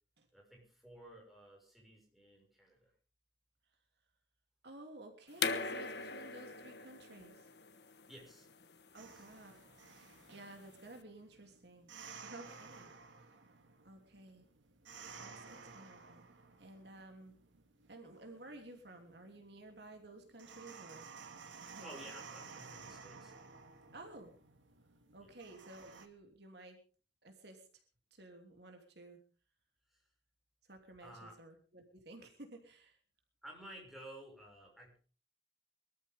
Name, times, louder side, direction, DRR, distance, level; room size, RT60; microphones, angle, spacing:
voice 1, 0.3-2.9 8.1-8.5 9.1-9.2 21.8-23.3 25.2-25.3 29.9-30.0 31.0-31.4 33.4-35.0, right 1 dB, ahead, -2 dB, 6.1 m, -54 dB
voice 2, 4.6-7.5 8.9-9.6 10.0-11.9 12.2-12.9 13.8-14.5 15.2-16.2 16.6-17.4 17.9-21.3 21.6-22.0 23.9-24.4 25.1-26.8 27.2-27.7 28.1-29.2 30.6-33.0, right 2 dB, 65° right, 4 dB, 3.1 m, -54 dB
sound 1, 5.3-10.9, left 5 dB, 65° left, 1.3 m, -41 dB
sound 2, 9.0-26.1, right 5 dB, 85° right, 2.1 m, -55 dB
23.5 x 13.5 x 3.6 m, 0.38 s
head